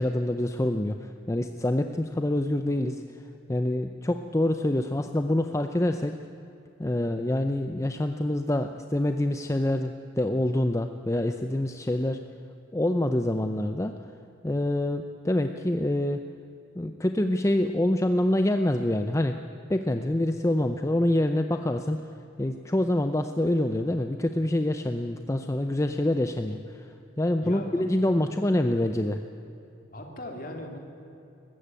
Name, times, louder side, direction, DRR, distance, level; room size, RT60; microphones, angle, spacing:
voice 1, 0.0-3.0 3.5-6.1 6.8-12.2 12.7-13.9 14.4-16.2 16.8-19.4 19.7-22.0 22.4-26.9 27.2-29.2, left 1 dB, 15° left, 7 dB, 0.6 m, -26 dB
voice 2, 27.4-27.8 28.3-28.4 29.9-30.8, left 1 dB, 45° left, 3 dB, 2.7 m, -38 dB
20.0 x 15.0 x 9.0 m, 2.8 s
head